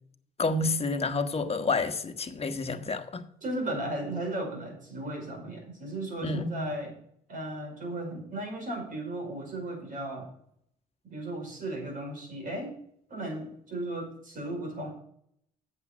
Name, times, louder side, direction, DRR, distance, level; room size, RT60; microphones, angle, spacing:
voice 1, 0.4-3.3 6.2-6.6, left 3 dB, 35° left, 8 dB, 1.4 m, -29 dB
voice 2, 3.4-7.0 7.3-10.3 11.0-12.8 13.1-14.9, right 1 dB, 50° right, 2 dB, 5.2 m, -35 dB
8.2 x 7.4 x 7.4 m, 0.68 s
supercardioid pair, 60°, 18 cm